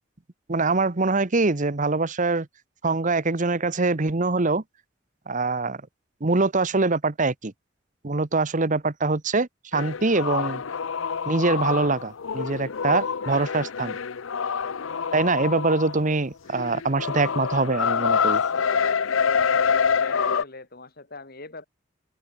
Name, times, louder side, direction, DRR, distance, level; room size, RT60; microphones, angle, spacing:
voice 1, 0.5-2.5 2.8-4.6 5.3-5.8 6.2-7.5 8.0-10.6 11.3-14.0 15.1-18.4, right 3 dB, 40° right, 1.1 m, -24 dB
sound 1, 9.7-16.2 16.5-20.4, left 6 dB, 80° left, 0.7 m, -26 dB
voice 2, 20.0-21.7, left 3 dB, 50° left, 4.5 m, -41 dB
open air
head